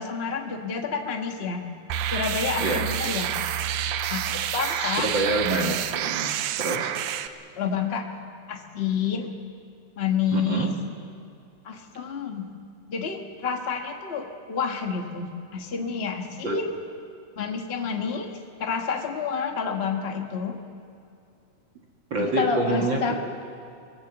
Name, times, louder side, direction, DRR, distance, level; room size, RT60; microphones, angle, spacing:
voice 1, 0.0-1.6 2.1-3.3 4.1-5.1 7.6-8.1 8.5-9.3 10.0-10.7 11.6-12.5 12.9-16.7 17.4-20.6 22.2-23.2, left 6 dB, 65° left, 3 dB, 0.6 m, -29 dB
sound 1, 1.9-7.3, right 10 dB, 85° right, 2.3 m, -28 dB
voice 2, 4.6-6.9 10.3-10.7 16.4-16.6 22.1-23.0, right 2 dB, 45° right, 0 dB, 2.1 m, -27 dB
23.5 x 19.5 x 8.0 m, 2.5 s
omnidirectional pair, 3.6 m